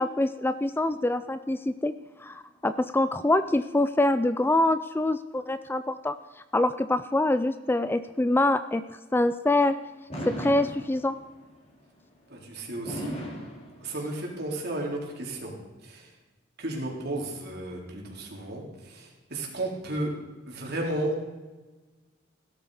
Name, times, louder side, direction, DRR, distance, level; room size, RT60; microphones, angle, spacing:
voice 1, 0.0-1.9 2.2-6.2 6.5-8.8 9.1-9.8 10.3-11.2, left 2 dB, 10° left, 12 dB, 0.4 m, -25 dB
Fireworks, 10.1-11.4 12.8-14.4, equal, 35° left, 3.8 m, -37 dB
voice 2, 12.3-13.2 13.8-15.5 15.8-16.1 16.6-20.1 20.5-21.4, right 1 dB, 55° right, -1 dB, 3.6 m, -33 dB
16.0 x 12.5 x 4.9 m, 1.2 s
head